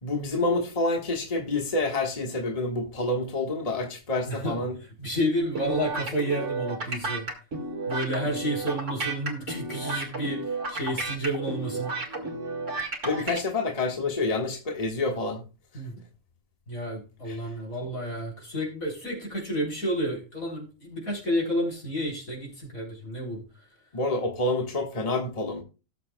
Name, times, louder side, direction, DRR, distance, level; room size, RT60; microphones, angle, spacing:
voice 1, 0.0-4.8 13.0-15.4 17.3-17.4 23.9-25.6, left 2 dB, 25° left, 2 dB, 1.5 m, -28 dB
voice 2, 5.0-7.3 7.9-11.9 15.7-15.9 16.7-23.4, equal, 75° left, -2 dB, 4.5 m, -30 dB
sound 1, 5.5-13.4, right 3 dB, 60° right, 2.2 m, -32 dB
18.0 x 7.1 x 2.2 m, 0.32 s
omnidirectional pair, 1.5 m